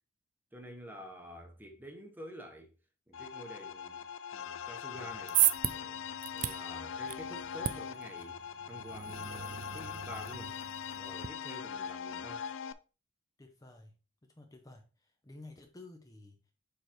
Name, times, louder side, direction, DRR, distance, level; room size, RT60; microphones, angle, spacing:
voice 1, 0.5-2.7 3.1-4.1 4.3-5.4 5.7-6.1 6.3-10.6 10.9-12.4, equal, 10° right, 1.0 m, -49 dB
sound 1, 3.1-12.7, left 8 dB, 75° left, 0.4 m, -41 dB
sound 2, 4.9-11.3, right 12 dB, 40° right, 0.3 m, -35 dB
voice 2, 13.4-13.9 14.3-16.5, left 2 dB, 20° left, 0.7 m, -53 dB
6.7 x 4.7 x 3.0 m
head